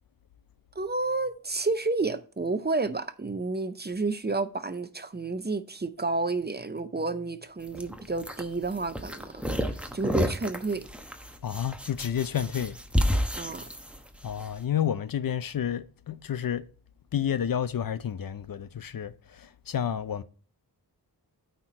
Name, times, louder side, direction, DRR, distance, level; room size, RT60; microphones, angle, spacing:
voice 1, 0.8-10.8 13.4-13.6, right 3 dB, 25° right, 0.7 m, -30 dB
sound 1, 7.6-14.5, equal, 5° right, 0.9 m, -31 dB
voice 2, 11.4-12.8 14.2-16.6 17.1-20.2, left 9 dB, 60° left, 0.6 m, -30 dB
8.8 x 4.5 x 4.3 m
cardioid pair, 60°, 40 cm